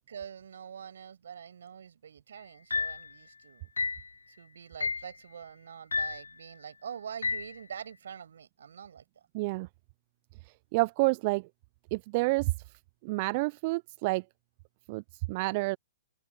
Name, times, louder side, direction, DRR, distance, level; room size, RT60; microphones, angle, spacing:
voice 1, 0.0-3.7 4.3-9.0, right 8 dB, 65° right, 7.4 m, -45 dB
sound 1, 2.7-3.1 3.8-4.1 4.8-5.1 5.9-6.3 7.2-7.5, left 4 dB, 80° left, 0.5 m, -31 dB
voice 2, 9.3-9.7 10.4-11.5 11.9-12.5 13.0-14.2 14.9-15.0 15.3-15.8, right 25 dB, 40° right, 0.6 m, -29 dB
open air
figure-of-eight pair, 120°, 0 cm